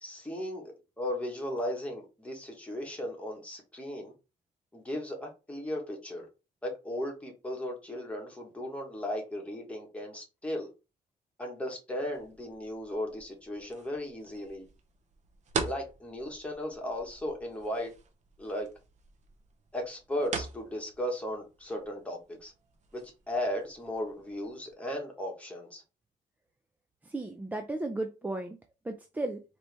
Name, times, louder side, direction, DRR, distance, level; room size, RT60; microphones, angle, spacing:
voice 1, 0.0-4.1 4.7-6.3 6.6-10.7 11.4-14.7 15.6-17.9 18.4-18.7 19.7-22.5 22.9-25.8, left 1 dB, 10° left, 1.2 m, -36 dB
sound 1, 12.1-24.7, right 5 dB, 45° right, 0.8 m, -43 dB
voice 2, 27.0-28.6 28.8-29.4, right 2 dB, 10° right, 0.3 m, -35 dB
4.4 x 2.7 x 3.3 m
cardioid pair, 160°, 16 cm